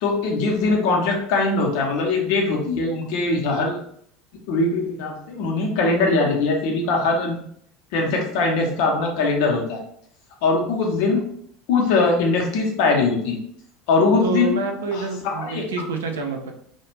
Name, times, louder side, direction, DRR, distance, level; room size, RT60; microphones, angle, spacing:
voice 1, 0.0-3.8 4.5-7.4 7.9-9.8 10.4-11.2 11.7-13.4 13.9-14.6 14.9-15.7, left 3 dB, 55° left, 0 dB, 0.6 m, -21 dB
voice 2, 14.2-16.5, right 4 dB, 70° right, 3 dB, 0.4 m, -27 dB
2.3 x 2.1 x 3.0 m, 0.66 s
figure-of-eight pair, 70°, 0 cm